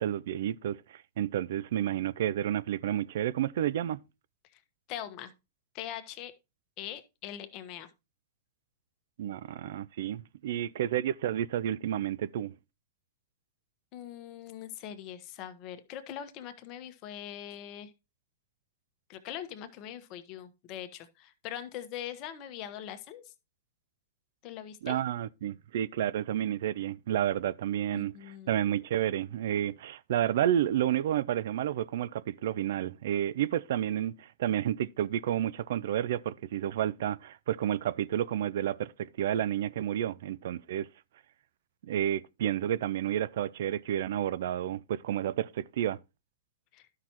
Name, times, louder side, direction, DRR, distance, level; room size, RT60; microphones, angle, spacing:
voice 1, 0.0-4.0 9.2-12.5 24.8-40.9 41.8-46.0, right 11 dB, 65° right, 0.4 m, -30 dB
voice 2, 4.9-5.3 5.7-6.3 6.8-7.9 13.9-17.9 19.1-23.3 24.4-25.0 27.9-28.6 46.7-46.9, left 10 dB, 45° left, 1.1 m, -42 dB
12.0 x 5.7 x 3.0 m
hypercardioid pair, 115°, 0 cm